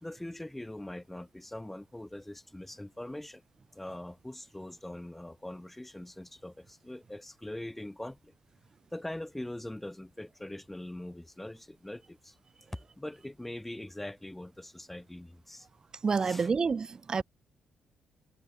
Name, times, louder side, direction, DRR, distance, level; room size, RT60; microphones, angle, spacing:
voice 1, 0.0-3.4 3.7-8.3 8.9-15.7 16.2-16.5, left 1 dB, 5° left, 1.2 m, -42 dB
voice 2, 16.0-17.2, right 5 dB, 35° right, 1.0 m, -28 dB
cardioid pair, 115°, 2 cm